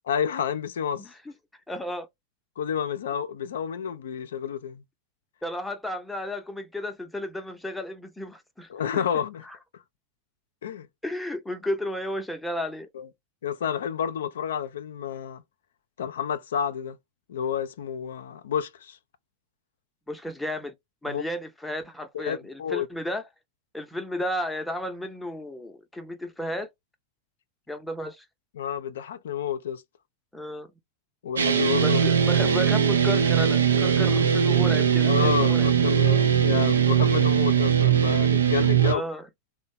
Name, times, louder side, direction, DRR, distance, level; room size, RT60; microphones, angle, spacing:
voice 1, 0.1-1.1 2.6-4.8 8.7-9.5 9.7-9.8 10.6-10.9 12.9-13.1 13.4-15.4 16.0-17.0 17.3-19.0 21.1-21.2 22.1-22.9 28.5-29.8 31.2-32.0 35.0-39.0, left 8 dB, 75° left, 0.4 m, -30 dB
voice 2, 1.7-2.1 5.4-9.0 9.5-9.6 11.0-12.9 20.1-20.7 21.0-23.3 23.7-26.7 27.7-28.2 30.3-30.7 31.8-35.7 38.8-39.2, left 1 dB, 5° left, 0.6 m, -33 dB
sound 1, 31.4-38.9, right 8 dB, 85° right, 0.5 m, -20 dB
2.9 x 2.1 x 2.6 m
hypercardioid pair, 95°, 0 cm